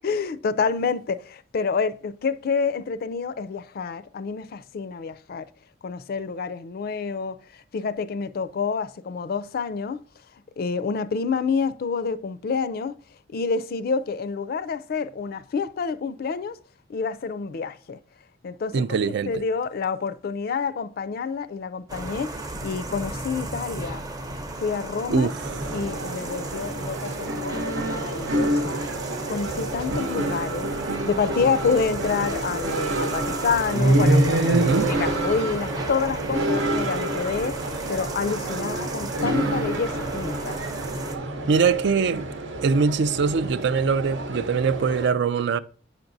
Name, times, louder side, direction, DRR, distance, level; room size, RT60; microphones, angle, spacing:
voice 1, 0.0-5.5 5.8-7.4 7.7-10.0 10.6-13.0 13.3-16.6 16.9-18.0 18.4-18.9 19.3-24.0 24.6-25.3 25.7-28.8 29.3-30.7 31.0-37.6 37.9-40.6, left 5 dB, 55° left, 0.4 m, -28 dB
voice 2, 18.7-19.4 25.1-25.4 34.5-34.9 41.5-42.3 42.6-45.6, right 5 dB, 65° right, 0.4 m, -22 dB
sound 1, 21.9-41.2, right 2 dB, 20° right, 0.6 m, -35 dB
sound 2, 25.4-45.1, right 1 dB, 85° right, 0.9 m, -27 dB
7.9 x 5.8 x 2.6 m
head